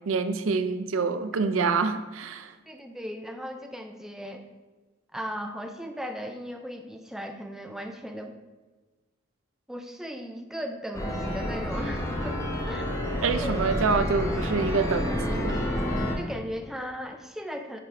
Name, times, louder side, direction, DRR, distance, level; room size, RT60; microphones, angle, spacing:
voice 1, 0.1-2.5 13.2-15.6, right 4 dB, 75° right, 10 dB, 0.4 m, -26 dB
voice 2, 2.7-4.4 5.1-8.4 9.7-12.9 13.4-13.6 16.2-17.8, equal, ahead, 4 dB, 0.3 m, -37 dB
sound 1, 10.9-16.2, equal, 15° left, 1.0 m, -29 dB
9.9 x 3.6 x 3.3 m, 1.2 s
head